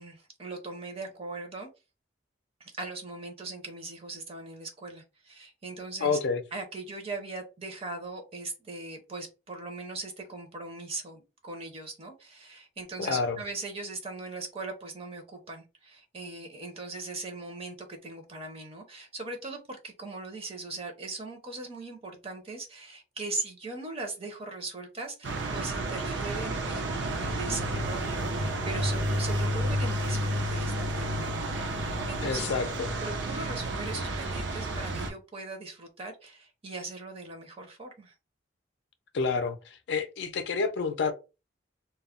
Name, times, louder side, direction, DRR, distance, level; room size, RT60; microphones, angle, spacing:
voice 1, 0.0-1.7 2.6-6.2 6.5-31.3 31.8-32.5 33.0-38.1, right 3 dB, 35° right, 0.6 m, -39 dB
voice 2, 6.0-6.4 13.0-13.4 32.2-32.9 39.1-41.1, left 4 dB, 70° left, 0.4 m, -29 dB
sound 1, 25.2-35.1, right 1 dB, 75° right, 0.6 m, -31 dB
2.2 x 2.0 x 3.6 m
head